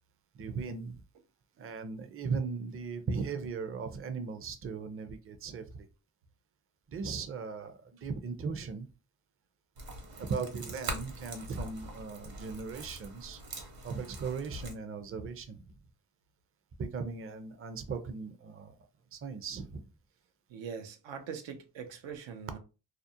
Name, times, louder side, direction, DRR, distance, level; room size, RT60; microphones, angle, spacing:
voice 1, 0.3-1.0 1.6-5.9 6.9-8.9 10.0-13.4 13.8-15.6 16.8-18.7 19.1-19.9, right 5 dB, 30° right, 0.5 m, -38 dB
sound 1, 9.8-14.7, right 2 dB, 55° right, 0.9 m, -43 dB
voice 2, 20.5-22.6, right 6 dB, 80° right, 0.6 m, -42 dB
2.5 x 2.0 x 2.7 m
cardioid pair, 65°, 44 cm